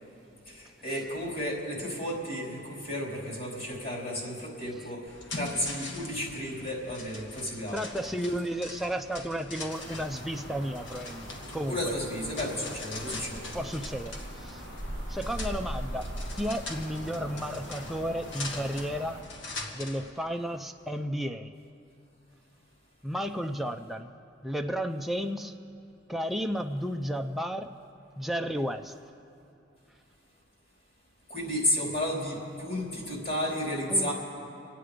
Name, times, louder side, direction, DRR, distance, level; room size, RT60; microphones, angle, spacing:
voice 1, 0.5-5.0 5.3-7.8 11.7-13.5 31.3-34.1, equal, 50° left, -3 dB, 3.9 m, -32 dB
sound 1, 5.1-20.1, left 2 dB, 65° left, 1.5 m, -43 dB
voice 2, 7.7-11.8 13.5-14.6 15.1-16.1 16.3-19.2 19.7-21.5 23.0-24.1 24.4-25.5 26.1-27.7 28.2-28.9 33.9-34.1, equal, ahead, 4 dB, 0.5 m, -33 dB
sound 2, 9.7-19.2, equal, 85° left, 3.0 m, -40 dB
26.0 x 9.2 x 5.1 m, 2.8 s
head